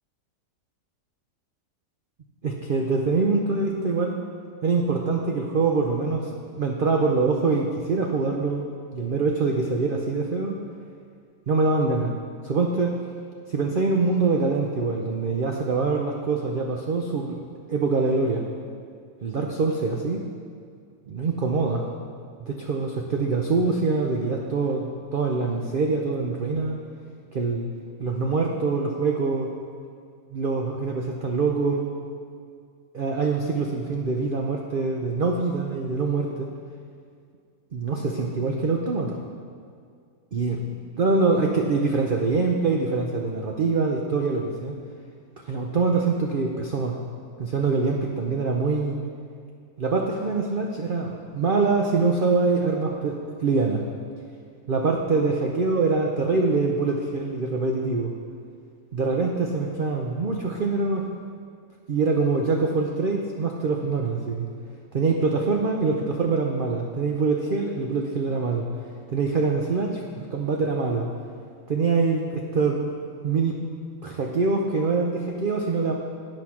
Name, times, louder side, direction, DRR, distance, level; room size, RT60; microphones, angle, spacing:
voice 1, 2.4-4.2 4.6-6.3 6.5-8.6 8.9-10.6 11.5-12.1 12.4-13.0 13.5-17.4 17.7-18.4 19.2-20.2 21.1-21.8 22.4-26.8 27.3-27.7 28.0-29.5 30.3-31.9 32.9-36.5 37.7-39.2 40.3-40.6 41.0-44.7 45.4-47.0 47.4-49.0 49.8-53.8 54.7-58.1 58.9-61.1 61.9-64.5 64.9-68.7 69.1-71.1 71.7-72.9 73.2-73.6 74.0-75.9, right 4 dB, 75° right, 1 dB, 0.4 m, -24 dB
9.1 x 6.2 x 5.7 m, 2.3 s
omnidirectional pair, 1.8 m